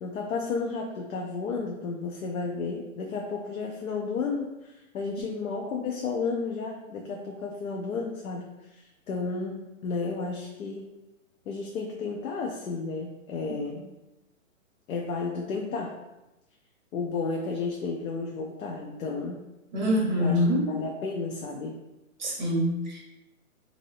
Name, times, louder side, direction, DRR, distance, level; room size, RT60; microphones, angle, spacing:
voice 1, 0.0-10.9 11.5-13.8 14.9-15.9 16.9-19.4 20.2-20.4 20.7-21.8, left 4 dB, 90° left, 1 dB, 0.6 m, -32 dB
voice 2, 19.7-20.7 22.2-23.0, left 1 dB, 35° right, -3 dB, 0.6 m, -25 dB
2.6 x 2.6 x 3.2 m, 1.0 s
hypercardioid pair, 170°, 41 cm